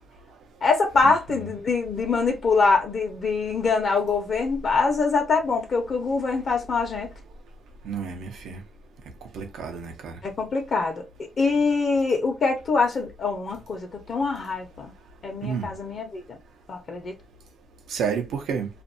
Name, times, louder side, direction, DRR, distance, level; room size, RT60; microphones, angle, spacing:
voice 1, 0.6-7.1 10.2-14.9 15.2-16.4 16.7-17.1, left 4 dB, 55° left, 0.8 m, -24 dB
voice 2, 7.8-8.6 9.3-10.2 15.4-15.7 17.9-18.7, right 6 dB, 85° right, 0.6 m, -30 dB
2.5 x 2.2 x 2.6 m
cardioid pair, 80°, 0 cm